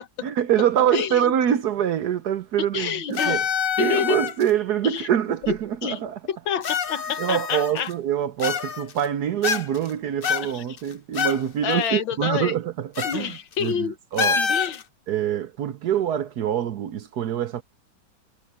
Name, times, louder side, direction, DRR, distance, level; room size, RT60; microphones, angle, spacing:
voice 1, 0.2-3.5 3.8-6.2 7.2-14.4 15.1-17.6, right 10 dB, 65° right, 1.2 m, -25 dB
voice 2, 2.7-3.4 3.8-4.2 4.8-5.1 5.4-5.5 5.8-6.0 6.3-7.9 10.5-10.6 11.6-12.5 13.0-13.9 14.4-14.8, left 8 dB, 80° left, 1.9 m, -27 dB
sound 1, 3.1-4.5 5.5-5.6 6.6-7.9 8.4-9.0 9.4-9.9 10.2-11.4 11.7-11.8 12.9-13.2 13.5-13.7 14.2-14.8, left 6 dB, 50° left, 0.6 m, -26 dB
omnidirectional pair, 2.1 m